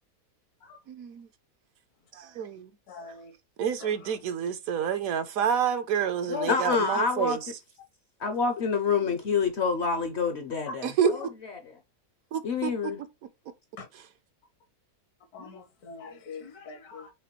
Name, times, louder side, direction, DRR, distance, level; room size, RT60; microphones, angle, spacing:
voice 1, 0.9-1.3 2.1-2.7 3.6-7.5 10.8-11.1 12.3-12.9 13.9-14.1, right 8 dB, 70° right, 0.9 m, -29 dB
voice 2, 2.9-3.3 3.8-3.9 9.0-9.1 11.0-11.1 13.8-13.9 15.3-17.1, left 3 dB, 75° left, 1.4 m, -38 dB
voice 3, 6.3-7.4 8.2-11.2 12.4-13.0, left 5 dB, 60° left, 0.7 m, -27 dB
4.9 x 3.4 x 3.0 m
omnidirectional pair, 1.7 m